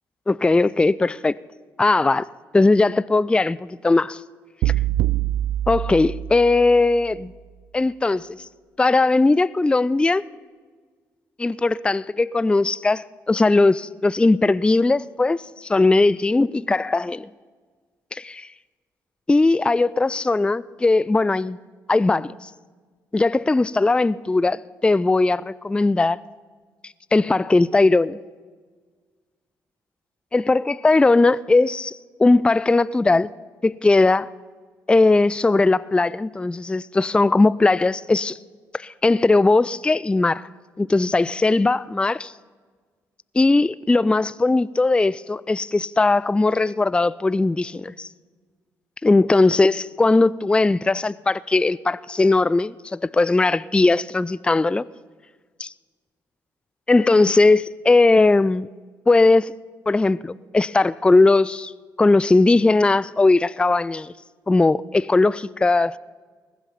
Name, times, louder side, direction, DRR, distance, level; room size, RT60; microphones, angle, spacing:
voice 1, 0.3-1.3 1.8-2.2 2.5-4.2 5.7-7.3 7.7-8.3 8.8-10.2 11.4-17.3 18.1-18.4 19.3-21.6 21.9-22.4 23.1-26.2 27.1-28.2 30.3-33.3 33.6-34.3 34.9-38.4 38.7-40.5 40.8-42.3 43.4-48.1 49.0-52.7 53.1-54.9 55.6-55.7 56.9-58.7 59.1-59.5 59.9-61.7 62.0-64.1 64.5-65.9, left 3 dB, 10° left, 0.3 m, -19 dB
sound 1, 4.6-6.8, right 13 dB, 60° right, 0.4 m, -24 dB
20.5 x 11.0 x 5.7 m
figure-of-eight pair, 40°, 9 cm